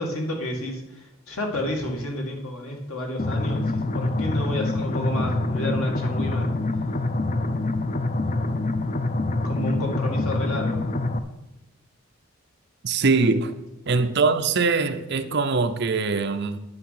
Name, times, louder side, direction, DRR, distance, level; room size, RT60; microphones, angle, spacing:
voice 1, 0.0-6.5 9.4-10.9 13.0-13.3, left 1 dB, 75° left, 2.0 m, -30 dB
sound 1, 3.2-11.2, left 2 dB, 35° left, 0.5 m, -26 dB
voice 2, 12.8-13.5 13.9-16.6, right 4 dB, 50° right, 0.6 m, -22 dB
9.8 x 6.9 x 5.8 m
head